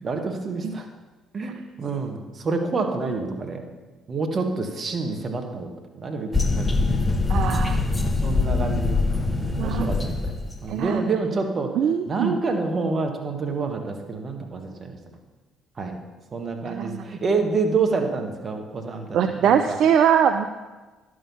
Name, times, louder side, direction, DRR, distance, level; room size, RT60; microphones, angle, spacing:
voice 1, 0.0-0.9 1.3-3.7 4.1-7.0 8.2-10.3 10.6-11.7 12.1-15.0 15.8-16.0 16.3-19.8, right 4 dB, 45° right, 4 dB, 1.7 m, -28 dB
sound 1, 6.3-10.7, left 3 dB, 25° left, 1.2 m, -23 dB
voice 2, 7.3-7.8 9.6-9.9 10.7-11.0 11.7-12.3 16.7-17.0 19.1-20.5, right 8 dB, 65° right, 8 dB, 0.5 m, -22 dB
11.0 x 6.6 x 5.7 m, 1.2 s
hypercardioid pair, 50°, 0 cm